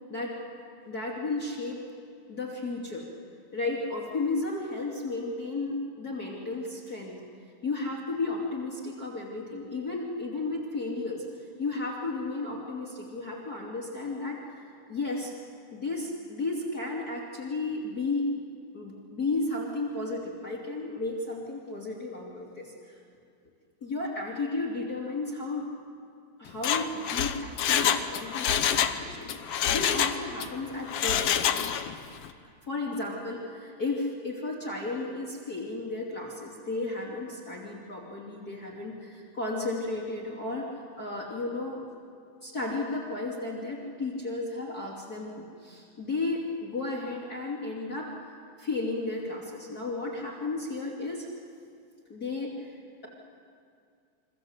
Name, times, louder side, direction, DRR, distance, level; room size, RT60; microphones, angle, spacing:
voice 1, 0.8-1.8 2.3-3.1 3.5-7.2 7.6-11.2 11.6-15.3 15.7-18.3 18.7-23.0 23.8-25.7 26.4-31.5 32.6-41.8 42.4-51.3 52.1-53.1, left 3 dB, 30° left, -4 dB, 3.2 m, -33 dB
Mechanisms, 26.5-29.0 29.3-30.5 30.9-31.9 32.2-32.3, left 9 dB, 60° left, 1.9 m, -26 dB
29.0 x 24.5 x 8.1 m, 2.3 s
omnidirectional pair, 3.5 m